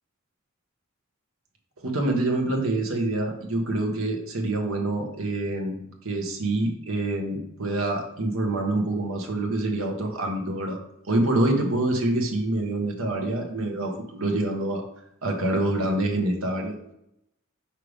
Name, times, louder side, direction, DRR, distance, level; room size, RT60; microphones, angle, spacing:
voice 1, 1.8-5.8 6.0-10.8 11.1-14.8 15.2-16.7, right 2 dB, 80° right, 2 dB, 1.2 m, -26 dB
5.6 x 5.0 x 3.3 m, 0.79 s
head